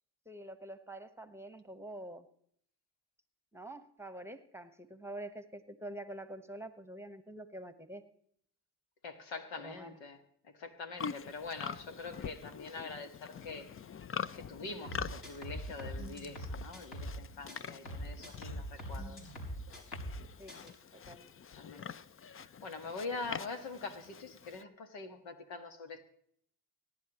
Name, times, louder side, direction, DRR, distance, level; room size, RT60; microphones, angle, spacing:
voice 1, 0.3-2.3 3.5-8.0 9.6-10.0 20.4-21.4, right 1 dB, 5° right, 10 dB, 1.2 m, -46 dB
voice 2, 9.0-10.2 10.6-13.7 14.3-19.3 21.6-21.9 22.3-26.0, left 3 dB, 75° left, 7 dB, 1.7 m, -44 dB
Livestock farm animals working animals, 11.0-24.6, left 7 dB, 30° left, 0.5 m, -45 dB
sound 1, 14.9-17.2 17.5-20.2 20.5-20.7, equal, 55° left, 5.2 m, -42 dB
24.5 x 10.5 x 3.0 m, 0.66 s
supercardioid pair, 55°, 46 cm